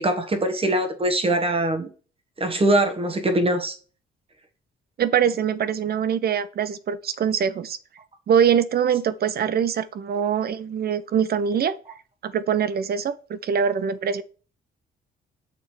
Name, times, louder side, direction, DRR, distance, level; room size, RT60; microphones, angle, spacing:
voice 1, 0.0-1.9 2.4-3.8, right 1 dB, 30° right, 1.3 m, -22 dB
voice 2, 5.0-7.8 8.3-11.8 12.2-14.2, right 8 dB, 50° right, 0.6 m, -23 dB
6.7 x 3.4 x 4.7 m
cardioid pair, 90°, 20 cm